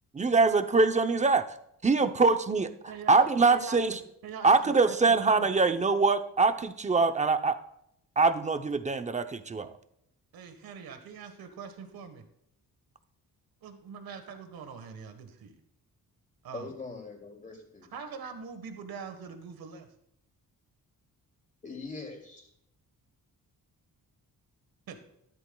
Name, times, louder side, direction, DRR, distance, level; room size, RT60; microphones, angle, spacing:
voice 1, 0.2-1.5 1.8-2.7 3.1-4.0 4.4-7.6 8.2-9.7, right 4 dB, 20° right, 8 dB, 0.7 m, -23 dB
voice 2, 2.0-2.3 2.9-3.8 4.2-5.5 10.3-12.2 13.6-15.5 16.4-16.7 17.9-19.9 24.9-25.0, right 6 dB, 90° right, 7 dB, 1.5 m, -43 dB
voice 3, 16.5-17.9 21.6-22.5, left 3 dB, 20° left, 1 dB, 2.6 m, -42 dB
13.5 x 12.0 x 2.3 m, 0.75 s
wide cardioid pair, 130°, 35 cm